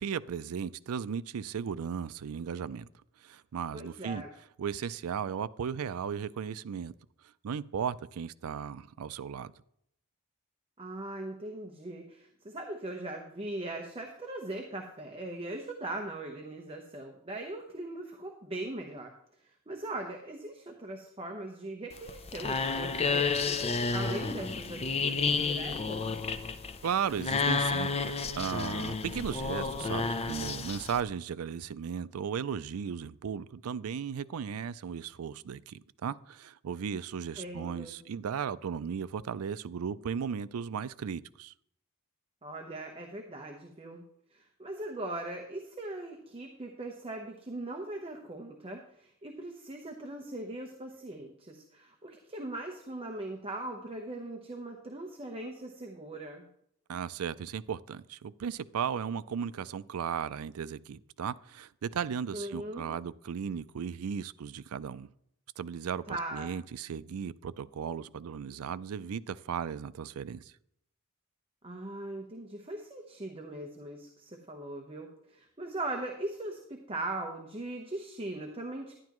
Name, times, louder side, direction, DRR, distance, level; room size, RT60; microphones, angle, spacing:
voice 1, 0.0-2.9 3.2-4.2 4.6-6.9 7.4-9.5 26.8-41.5 56.9-65.1 65.6-70.5, right 7 dB, 80° right, 0.4 m, -36 dB
voice 2, 3.7-4.3 10.8-19.1 19.4-23.6 23.9-26.0 37.4-38.0 42.4-44.0 44.3-56.5 62.3-62.9 66.1-66.5 71.6-78.9, right 2 dB, 25° right, 0.9 m, -40 dB
sound 1, 21.9-31.0, left 4 dB, 30° left, 0.5 m, -31 dB
11.5 x 10.5 x 3.0 m
head